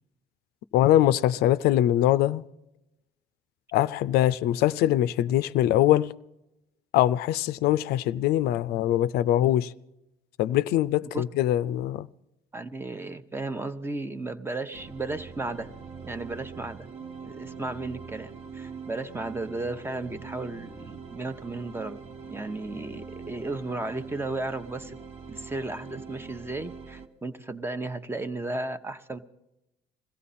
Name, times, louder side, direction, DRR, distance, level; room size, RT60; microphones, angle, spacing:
voice 1, 0.7-2.4 3.7-6.1 6.9-9.7 10.4-12.1, left 13 dB, 80° left, 0.4 m, -23 dB
voice 2, 12.5-15.7 16.0-16.9 17.2-22.0 22.3-25.0 25.3-29.2, right 2 dB, 15° right, 0.9 m, -34 dB
sound 1, 14.7-27.1, right 5 dB, 40° right, 1.4 m, -43 dB
21.5 x 15.0 x 4.2 m
cardioid pair, 100°, 16 cm